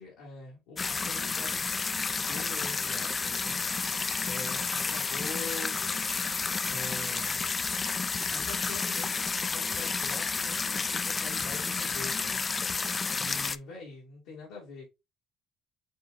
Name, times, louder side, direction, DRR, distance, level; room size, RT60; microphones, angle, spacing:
voice 1, 0.0-1.7 2.1-3.6 4.2-5.7 6.7-7.4 8.3-12.5 13.2-14.9, left 3 dB, 85° left, 2.3 m, -44 dB
sound 1, 0.8-13.6, left 4 dB, 30° left, 0.3 m, -31 dB
7.7 x 2.6 x 2.5 m
supercardioid pair, 75°, 0 cm